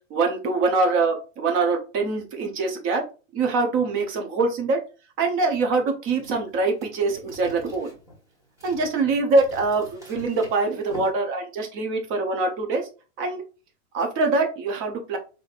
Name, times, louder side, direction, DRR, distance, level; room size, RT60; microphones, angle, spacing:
voice 1, 0.1-3.0 3.3-4.8 5.2-7.9 8.6-12.9 13.2-13.4 13.9-15.2, right 3 dB, 30° right, 4 dB, 0.7 m, -24 dB
sound 1, 6.1-11.1, equal, 10° right, 1.3 m, -45 dB
4.0 x 2.7 x 2.4 m, 0.34 s
hypercardioid pair, 125°, 39 cm